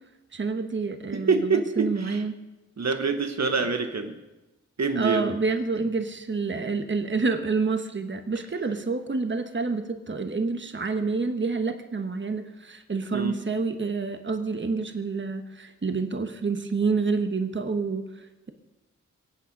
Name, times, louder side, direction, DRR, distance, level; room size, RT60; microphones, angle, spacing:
voice 1, 0.3-2.3 4.9-18.5, right 4 dB, 40° right, 8 dB, 1.2 m, -28 dB
voice 2, 1.3-2.2 2.8-4.2 4.8-5.3 13.1-13.3, right 4 dB, 60° right, 6 dB, 1.2 m, -25 dB
23.0 x 8.7 x 5.3 m, 1.0 s
wide cardioid pair, 80°, 30 cm